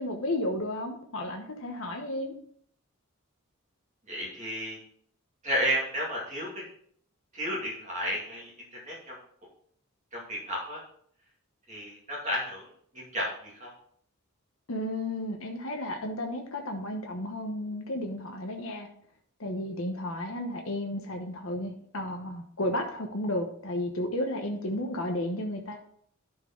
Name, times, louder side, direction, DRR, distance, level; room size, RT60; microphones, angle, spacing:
voice 1, 0.0-2.3 14.7-18.9 19.4-25.8, left 1 dB, 65° left, 3 dB, 1.0 m, -33 dB
voice 2, 4.1-4.8 5.4-6.6 7.3-8.5 8.9-9.1 10.1-10.8 11.7-12.6 12.9-13.7, equal, 35° right, -4 dB, 2.2 m, -32 dB
11.5 x 4.6 x 3.8 m, 0.62 s
head